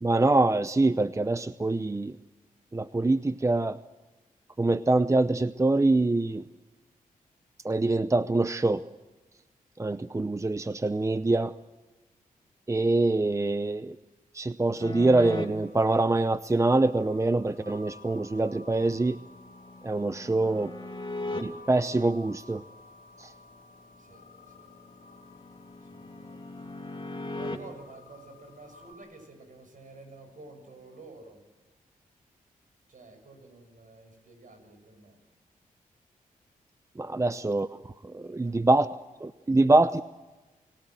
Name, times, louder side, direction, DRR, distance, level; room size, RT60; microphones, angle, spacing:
voice 1, 0.0-2.2 2.7-3.8 4.6-6.4 7.6-8.8 9.8-11.5 12.7-14.0 14.3-19.2 19.8-20.7 21.4-22.6 23.2-23.3 37.0-38.9 39.2-40.0, right 2 dB, 20° right, 13 dB, 0.7 m, -25 dB
sound 1, 14.8-15.5 18.8-21.4 24.5-27.6, left 2 dB, 35° left, 3.0 m, -38 dB
sound 2, 15.0-28.9, left 3 dB, 80° left, 3.6 m, -54 dB
voice 2, 24.0-24.7 25.8-26.4 27.3-31.4 32.9-35.2 37.0-37.4 38.3-38.9 39.5-39.8, right 2 dB, 60° right, 6 dB, 7.5 m, -51 dB
29.5 x 17.5 x 7.8 m, 1.2 s
cardioid pair, 55°, 15 cm